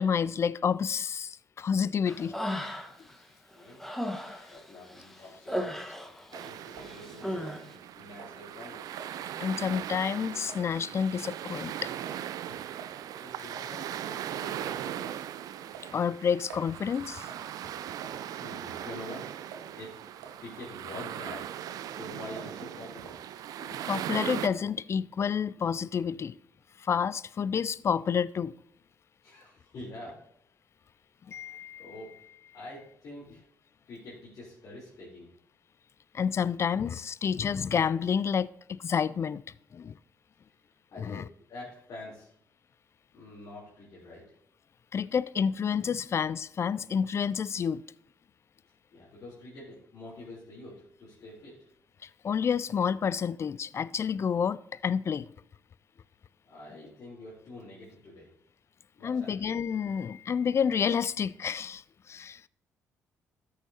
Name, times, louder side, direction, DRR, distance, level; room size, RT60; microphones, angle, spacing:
voice 1, 0.0-2.3 3.0-3.1 9.4-11.9 15.9-17.3 23.6-26.4 26.8-28.5 31.3-31.9 36.1-39.4 39.7-40.0 41.0-41.2 44.9-47.8 52.0-55.3 59.0-62.5, left 7 dB, 40° left, 0.3 m, -29 dB
Human voice, 2.1-3.1 3.5-6.5 6.7-7.6, equal, 5° left, 1.3 m, -36 dB
voice 2, 3.5-4.2 4.5-5.8 6.3-7.7 7.9-8.9 12.5-12.6 13.0-15.3 18.4-19.4 19.7-19.9 20.4-21.5 21.9-23.2 29.2-30.2 31.8-32.1 32.5-33.4 33.9-35.3 40.9-41.2 41.5-42.3 43.1-44.3 48.9-51.7 56.4-58.3 59.0-59.5, left 2 dB, 60° left, 3.3 m, -46 dB
sound 1, 6.3-24.5, right 11 dB, 65° right, 0.4 m, -39 dB
sound 2, 6.8-7.0 7.5-7.9 8.2-8.4 9.0-9.1 9.7-9.9 10.5-10.7 11.2-11.5 12.0-12.2 12.8-13.0 13.5-13.7 14.3-14.5 15.0-15.3 15.7-16.7 17.3-17.5 18.0-18.4 18.8-19.0 19.5-19.7 20.2-20.4 20.9-21.3 21.7-21.9 22.4-22.6 23.0-23.2 23.8-24.0 24.5-24.7, right 6 dB, 85° right, 0.9 m, -48 dB
13.5 x 6.6 x 2.8 m
hypercardioid pair, 45°, 7 cm